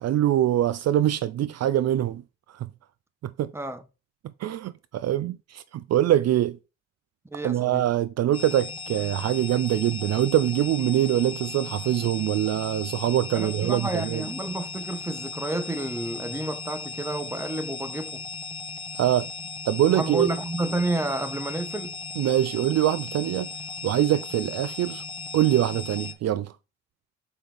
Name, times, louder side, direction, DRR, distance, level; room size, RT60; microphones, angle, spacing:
voice 1, 0.0-2.2 2.5-2.7 3.2-3.5 4.4-6.6 7.4-14.2 19.0-19.3 19.7-20.3 22.2-23.5 23.8-25.0 25.3-26.5, right 12 dB, 60° right, 0.5 m, -24 dB
voice 2, 7.3-7.9 13.3-18.2 19.9-22.0, right 2 dB, 10° right, 0.9 m, -30 dB
sound 1, 8.3-26.1, left 4 dB, 15° left, 1.1 m, -37 dB
7.1 x 5.7 x 3.5 m
cardioid pair, 90°, 30 cm